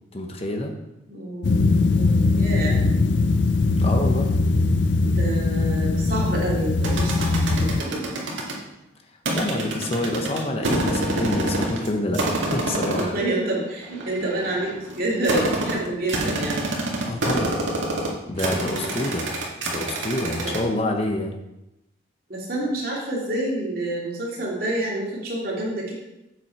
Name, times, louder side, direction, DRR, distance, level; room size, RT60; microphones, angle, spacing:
voice 1, 0.1-0.7 3.8-4.3 9.3-13.1 17.1-17.6 18.3-19.3 19.6-21.3, left 1 dB, 30° left, 3 dB, 1.0 m, -27 dB
voice 2, 1.1-1.6 1.9-2.8 5.0-8.3 13.0-16.7 18.6-18.9 20.4-20.5 22.3-25.9, right 1 dB, 50° right, -4 dB, 2.6 m, -28 dB
sound 1, 1.4-7.8, left 3 dB, 65° left, 0.5 m, -21 dB
sound 2, 6.8-8.6 9.3-11.9 12.1-13.2 13.8-20.6, right 1 dB, 80° right, 2.0 m, -26 dB
7.8 x 7.4 x 4.4 m, 0.92 s
head